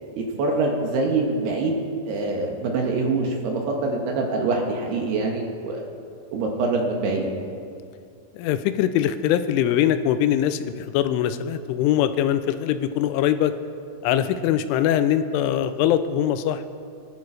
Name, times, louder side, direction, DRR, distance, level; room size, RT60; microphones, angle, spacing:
voice 1, 0.1-1.8 2.1-5.9 6.3-7.3, right 3 dB, 65° right, 0 dB, 3.3 m, -24 dB
voice 2, 8.3-13.5 14.0-16.6, left 10 dB, 85° left, 11 dB, 3.1 m, -22 dB
24.5 x 11.5 x 4.8 m, 2.3 s
omnidirectional pair, 5.6 m